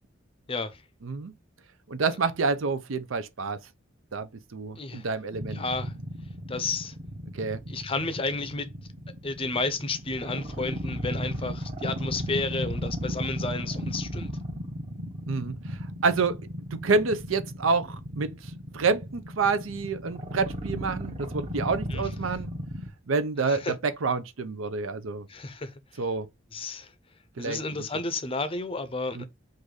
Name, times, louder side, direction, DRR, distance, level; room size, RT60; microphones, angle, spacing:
voice 1, 0.5-0.8 4.8-5.1 5.5-5.9 6.5-7.0 7.7-8.7 9.2-14.3 21.9-22.4 23.4-23.7 25.3-26.0 26.5-26.9 27.4-29.2, left 3 dB, 30° left, 0.5 m, -32 dB
voice 2, 1.0-1.3 1.9-3.6 4.1-5.6 7.3-7.6 15.3-15.5 16.0-16.4 16.7-18.3 18.7-22.5 23.1-25.2 26.0-26.3 27.4-27.6 29.1-29.2, right 4 dB, 85° right, 0.6 m, -28 dB
sound 1, 5.3-22.9, equal, 30° right, 0.8 m, -35 dB
3.9 x 2.6 x 4.7 m
head